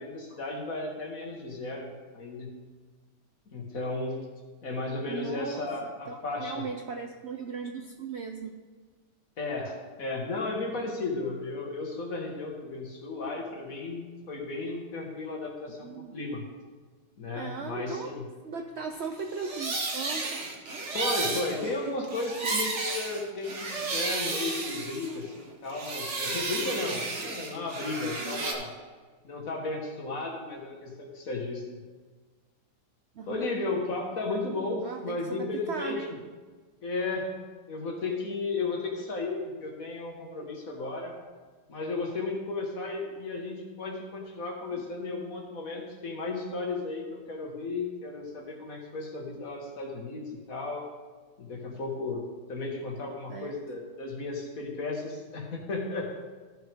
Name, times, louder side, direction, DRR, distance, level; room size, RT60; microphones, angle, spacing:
voice 1, 0.0-2.5 3.5-4.3 4.6-6.6 9.4-16.4 17.2-18.3 20.9-28.7 29.2-31.8 33.3-36.0 36.8-37.3 37.7-41.1 41.7-50.9 51.4-52.2 52.5-56.1, left 3 dB, 55° left, 0 dB, 2.0 m, -34 dB
voice 2, 5.1-8.6 15.8-16.1 17.4-18.1 18.4-20.3 28.2-28.5 33.2-33.5 34.8-36.1 44.7-44.8 53.3-53.6, right 5 dB, 80° right, 5 dB, 0.6 m, -38 dB
sound 1, 19.2-25.4 25.7-28.5, right 3 dB, 45° right, 1.4 m, -33 dB
14.5 x 6.2 x 3.6 m, 1.4 s
omnidirectional pair, 1.8 m